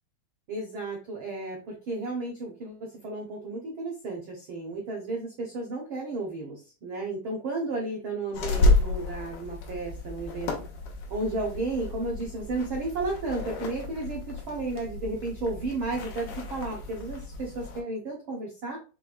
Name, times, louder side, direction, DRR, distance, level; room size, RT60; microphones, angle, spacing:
voice 1, 0.5-10.5 11.1-18.8, right 2 dB, 80° right, -1 dB, 1.1 m, -33 dB
sound 1, 8.3-17.8, left 2 dB, 70° left, 2.5 m, -31 dB
6.8 x 3.4 x 2.3 m, 0.35 s
omnidirectional pair, 4.1 m